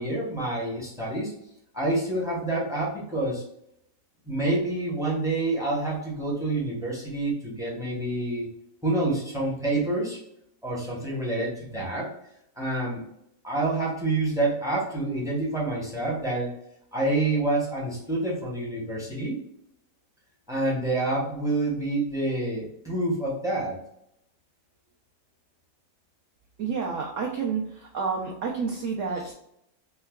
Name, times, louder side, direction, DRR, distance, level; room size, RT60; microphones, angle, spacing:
voice 1, 0.0-1.3 1.7-3.4 4.3-8.5 8.8-10.2 10.6-12.1 12.6-13.0 13.4-16.5 16.9-19.4 20.5-23.8, right 2 dB, 5° right, -5 dB, 0.4 m, -27 dB
voice 2, 26.6-29.3, right 5 dB, 70° right, -1 dB, 0.7 m, -29 dB
4.6 x 2.1 x 2.3 m, 0.75 s
omnidirectional pair, 1.8 m